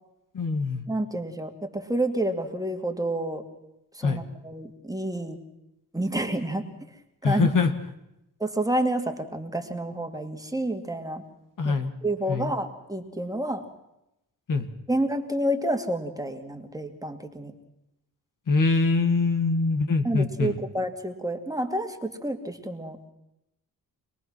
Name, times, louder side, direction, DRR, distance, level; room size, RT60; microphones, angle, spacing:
voice 1, 0.3-0.9 4.0-4.2 7.2-7.7 11.6-11.9 12.3-12.5 14.5-14.7 18.5-20.6, left 4 dB, 55° left, 7 dB, 1.8 m, -23 dB
voice 2, 0.9-3.4 3.9-5.4 5.9-6.7 7.2-7.5 8.4-11.2 11.6-11.8 12.0-13.7 14.9-17.5 20.0-23.0, right 1 dB, 10° right, 4 dB, 2.3 m, -29 dB
26.0 x 19.0 x 6.2 m, 0.86 s
cardioid pair, 75°, 39 cm